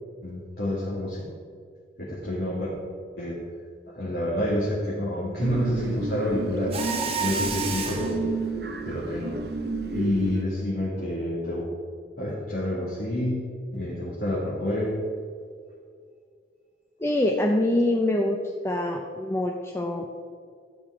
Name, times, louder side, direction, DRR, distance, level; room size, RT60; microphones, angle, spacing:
voice 1, 0.2-1.2 2.0-2.7 3.2-3.4 3.9-6.8 7.2-8.3 8.8-9.4 9.8-11.6 12.2-15.0, left 1 dB, 60° left, -7 dB, 2.3 m, -28 dB
sound 1, 5.4-10.4, right 3 dB, 60° right, 1.0 m, -32 dB
Mechanisms, 6.7-8.2, right 5 dB, 35° right, 1.2 m, -29 dB
voice 2, 17.0-18.4 18.6-20.1, left 1 dB, 15° left, 1 dB, 0.6 m, -24 dB
12.5 x 8.5 x 4.9 m, 2.2 s
head